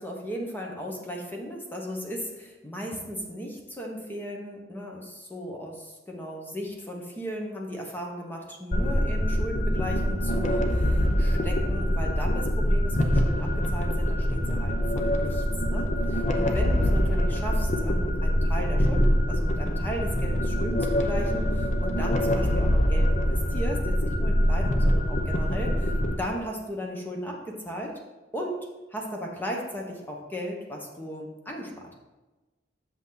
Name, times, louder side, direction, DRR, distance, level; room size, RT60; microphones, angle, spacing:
voice 1, 0.0-28.0 28.3-31.9, equal, 10° left, -1 dB, 1.2 m, -36 dB
sound 1, 8.7-26.2, equal, 40° left, 0.8 m, -24 dB
8.0 x 6.3 x 4.1 m, 1.1 s
head